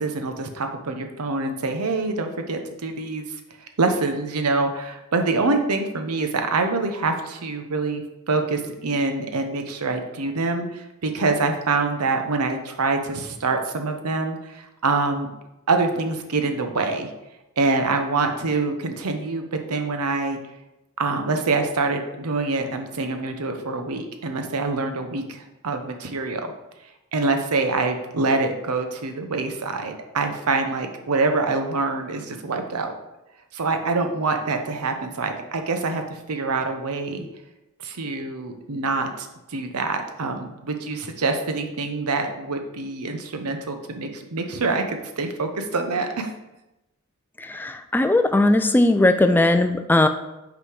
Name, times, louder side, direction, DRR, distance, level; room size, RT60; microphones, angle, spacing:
voice 1, 0.0-3.2 3.6-15.3 15.7-17.1 17.6-20.4 21.0-26.5 27.1-32.9 33.5-37.3 37.8-46.3, right 3 dB, 90° right, 6 dB, 0.8 m, -25 dB
voice 2, 47.4-50.1, left 2 dB, 10° left, 8 dB, 0.3 m, -18 dB
5.6 x 4.1 x 4.8 m, 0.95 s
head